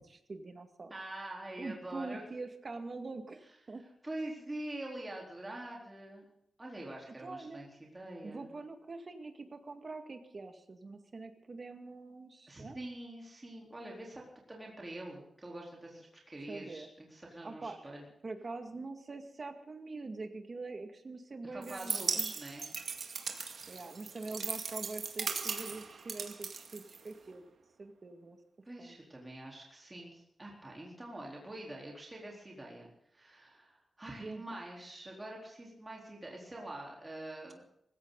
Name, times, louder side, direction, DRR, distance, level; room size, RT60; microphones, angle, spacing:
voice 1, 0.1-0.9 1.6-3.4 3.7-3.9 7.1-7.6 8.2-12.8 16.5-16.9 17.4-17.8 18.2-22.3 23.7-27.5 27.8-28.4 28.8-28.9 34.2-34.6, right 3 dB, 35° right, 6 dB, 2.1 m, -44 dB
voice 2, 0.9-2.2 4.0-6.2 6.6-7.7 7.9-8.5 12.5-14.2 14.5-18.0 21.5-22.7 28.6-32.9 33.1-37.6, right 1 dB, 15° right, -2 dB, 4.0 m, -45 dB
sound 1, 21.6-27.3, right 5 dB, 60° right, 2.2 m, -38 dB
19.5 x 16.5 x 4.0 m, 0.77 s
wide cardioid pair, 160°, 0 cm